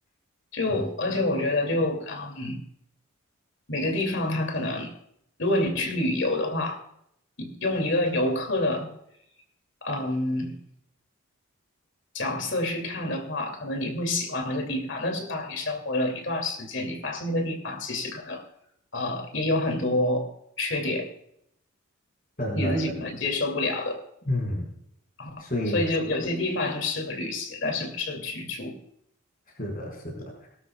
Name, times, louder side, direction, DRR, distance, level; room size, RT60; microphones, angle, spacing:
voice 1, 0.5-2.6 3.7-4.9 5.4-6.8 7.4-8.9 9.8-10.6 12.1-18.4 18.9-20.3 20.6-21.1 22.5-24.0 25.2-25.4 25.7-28.8, left 2 dB, 55° left, 5 dB, 2.5 m, -28 dB
voice 2, 22.4-23.0 24.3-24.7 25.4-25.8 29.6-30.5, left 1 dB, 40° left, 0 dB, 4.8 m, -30 dB
19.0 x 12.0 x 2.3 m, 0.72 s
head